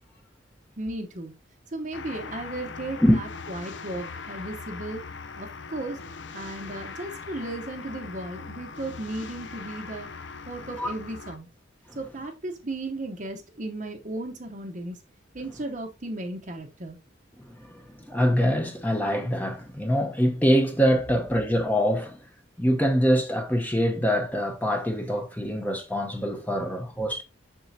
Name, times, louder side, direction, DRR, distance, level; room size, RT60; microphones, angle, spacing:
voice 1, 0.8-1.3 1.7-5.0 5.4-6.0 6.3-10.1 10.5-11.5 11.9-15.0 15.3-17.0, right 2 dB, 40° right, 0.9 m, -35 dB
sound 1, 1.9-11.4, left 5 dB, 70° left, 0.7 m, -40 dB
voice 2, 17.5-22.2 22.6-27.2, equal, 10° left, 0.8 m, -24 dB
7.3 x 6.2 x 2.7 m
head